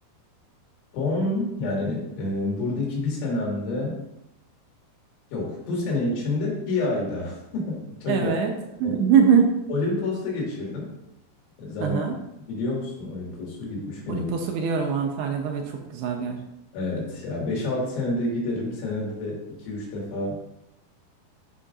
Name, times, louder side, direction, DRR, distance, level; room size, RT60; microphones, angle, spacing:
voice 1, 0.9-4.0 5.3-8.3 8.8-9.0 9.7-10.9 11.6-12.0 12.5-14.3 16.7-20.4, left 2 dB, 85° left, -4 dB, 4.4 m, -28 dB
voice 2, 8.1-8.5 8.8-9.5 11.8-12.1 14.1-16.4, right 7 dB, 85° right, 3 dB, 2.5 m, -22 dB
10.0 x 5.3 x 2.5 m, 0.86 s
omnidirectional pair, 5.3 m